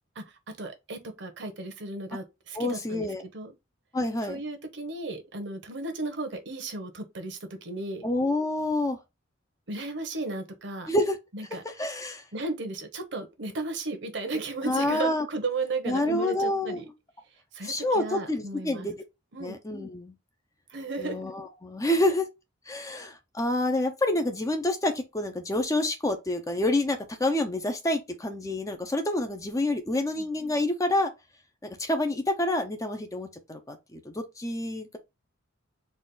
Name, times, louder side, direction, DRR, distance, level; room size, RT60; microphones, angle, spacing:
voice 1, 0.2-3.1 3.3-3.5 4.3-8.1 9.7-10.9 11.3-11.6 12.3-16.8 17.5-18.9 19.3-19.6 20.7-21.2 30.0-30.3, right 2 dB, 60° right, 1.0 m, -35 dB
voice 2, 2.5-3.2 3.9-4.4 8.0-9.0 10.9-11.2 11.5-12.2 14.6-15.3 15.8-16.9 17.6-19.0 19.4-20.1 21.0-22.3 22.7-31.1 31.6-35.0, left 1 dB, 15° left, 0.5 m, -28 dB
4.1 x 2.5 x 3.8 m
head